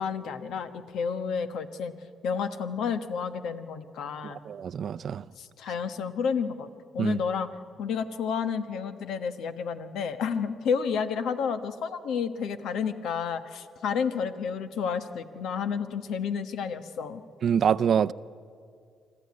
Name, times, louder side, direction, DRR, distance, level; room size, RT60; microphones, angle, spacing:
voice 1, 0.0-1.9 2.2-4.4 5.4-6.7 6.9-7.5 7.8-17.2, left 6 dB, 80° left, 1.2 m, -30 dB
voice 2, 4.2-5.2 7.0-7.2 17.4-18.1, right 8 dB, 60° right, 0.5 m, -25 dB
25.5 x 13.5 x 9.6 m
supercardioid pair, 70°, 0 cm